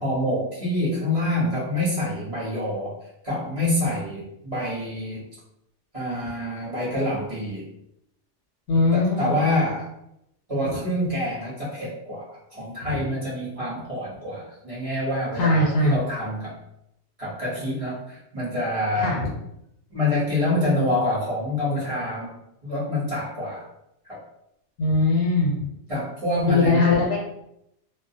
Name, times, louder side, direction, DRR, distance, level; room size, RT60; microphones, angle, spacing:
voice 1, 0.0-2.9 3.2-5.2 5.9-7.7 8.9-9.9 10.5-16.5 17.2-19.2 19.9-22.3 22.6-23.6 24.0-24.2 25.9-26.8, left 1 dB, 30° right, -8 dB, 0.9 m, -26 dB
voice 2, 8.7-9.4 12.8-13.1 15.4-16.0 19.0-19.3 24.8-25.5 26.5-27.2, left 2 dB, 75° left, -3 dB, 0.9 m, -21 dB
2.3 x 2.0 x 2.6 m, 0.80 s
omnidirectional pair, 1.2 m